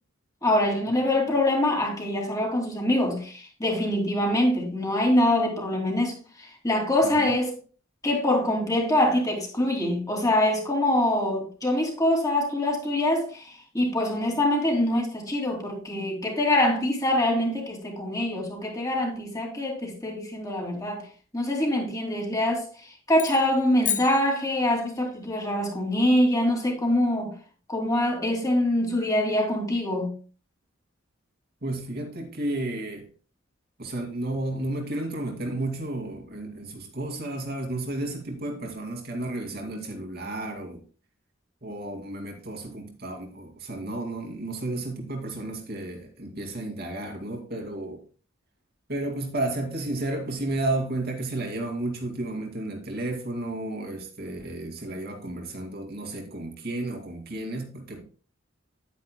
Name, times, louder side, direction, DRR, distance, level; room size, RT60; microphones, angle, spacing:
voice 1, 0.4-7.6 8.0-21.1 21.3-27.3 27.7-30.1, left 1 dB, 15° left, 2.7 m, -24 dB
sound 1, 23.1-25.1, left 10 dB, 40° left, 0.9 m, -33 dB
voice 2, 31.6-33.1 33.8-40.8 41.6-48.0 48.9-58.1, right 2 dB, 50° right, 2.4 m, -32 dB
10.5 x 9.7 x 2.2 m
head